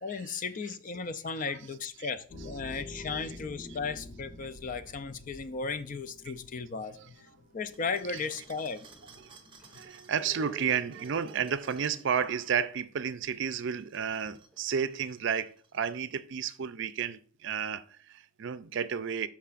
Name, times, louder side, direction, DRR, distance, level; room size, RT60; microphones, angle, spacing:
voice 1, 0.0-7.3 7.5-8.9, left 4 dB, 40° left, 0.4 m, -36 dB
sound 1, 2.3-9.8, left 2 dB, 70° left, 1.8 m, -48 dB
sound 2, 7.3-7.4 7.9-8.0 8.2-12.3 14.0-15.0, right 1 dB, 5° right, 2.3 m, -53 dB
sound 3, 7.7-12.6 13.7-16.1, right 5 dB, 25° right, 0.7 m, -58 dB
voice 2, 9.7-19.3, right 7 dB, 60° right, 0.5 m, -32 dB
12.5 x 4.7 x 2.5 m
head